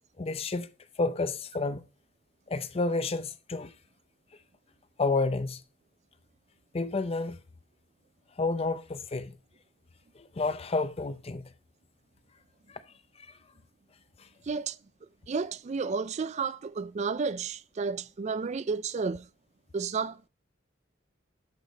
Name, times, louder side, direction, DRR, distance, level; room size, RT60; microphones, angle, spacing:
voice 1, 0.2-0.7 1.0-1.8 2.5-3.7 5.0-5.6 6.7-7.4 8.4-9.3 10.4-11.4, left 3 dB, 30° left, 0.5 m, -30 dB
voice 2, 14.4-14.8 15.3-19.3 19.7-20.3, right 5 dB, 35° right, 0.4 m, -32 dB
12.0 x 5.0 x 4.0 m
head